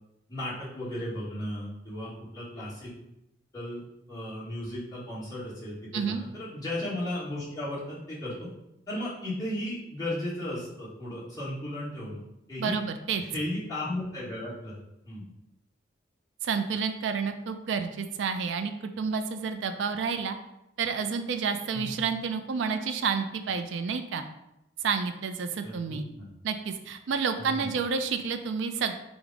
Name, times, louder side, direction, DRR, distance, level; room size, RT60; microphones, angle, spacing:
voice 1, 0.3-2.9 3.5-3.8 4.1-8.5 8.9-12.2 12.5-12.8 13.2-15.2 21.7-21.9 25.6-26.3 27.4-27.7, left 1 dB, 20° left, -8 dB, 1.5 m, -35 dB
voice 2, 12.6-13.2 16.4-20.4 20.8-24.2 24.8-26.0 26.4-28.9, right 5 dB, 75° right, 8 dB, 0.4 m, -30 dB
4.9 x 2.1 x 4.7 m, 0.87 s
head